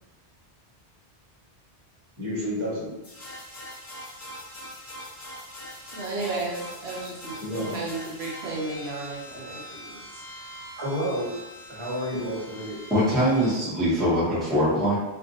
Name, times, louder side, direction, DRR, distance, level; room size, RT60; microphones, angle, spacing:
voice 1, 2.2-2.9 7.4-7.7 10.8-11.3 11.7-12.8, equal, 30° right, -8 dB, 1.1 m, -30 dB
sound 1, 3.0-13.5, equal, 70° left, 1.2 m, -42 dB
voice 2, 5.9-7.2 7.5-10.2 12.3-12.4, right 3 dB, 75° right, -4 dB, 0.9 m, -33 dB
voice 3, 12.9-15.0, equal, ahead, -10 dB, 0.8 m, -22 dB
2.5 x 2.4 x 2.6 m, 1.1 s
omnidirectional pair, 1.1 m